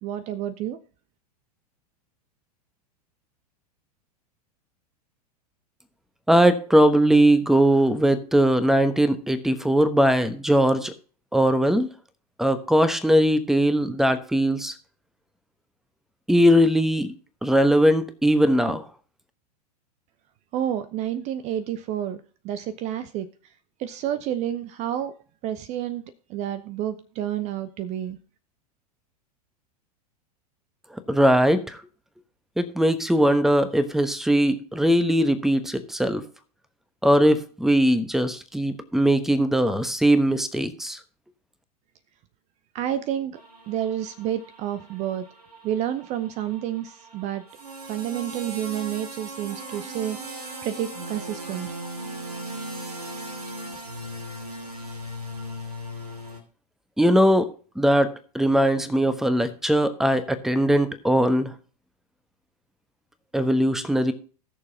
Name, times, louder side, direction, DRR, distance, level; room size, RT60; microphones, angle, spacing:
voice 1, 0.0-0.8 20.5-23.3 23.8-25.1 25.4-28.2 42.7-43.4 43.7-45.3 45.6-47.4 47.9-51.7, right 11 dB, 35° right, 13 dB, 0.8 m, -30 dB
voice 2, 6.3-10.9 11.3-11.9 12.4-14.7 16.3-17.1 17.4-18.8 31.1-31.8 32.6-36.2 37.0-41.0 57.0-57.5 57.8-61.5 63.3-64.1, equal, ahead, 12 dB, 1.1 m, -20 dB
sound 1, 43.3-56.4, right 1 dB, 70° right, 2.6 m, -38 dB
18.5 x 6.8 x 2.8 m, 0.40 s
figure-of-eight pair, 90°, 20 cm